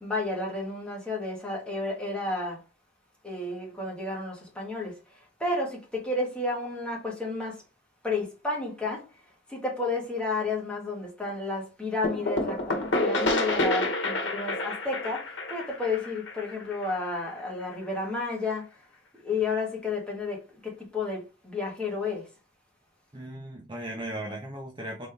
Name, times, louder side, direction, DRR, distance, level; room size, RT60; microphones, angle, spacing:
voice 1, 0.0-2.6 3.2-7.6 8.0-9.1 9.5-18.7 19.2-22.3, left 3 dB, 5° left, 1.7 m, -31 dB
sound 1, 12.0-17.6, left 2 dB, 85° left, 1.1 m, -29 dB
voice 2, 23.1-25.1, right 1 dB, 25° right, 0.9 m, -37 dB
4.0 x 3.7 x 3.3 m
head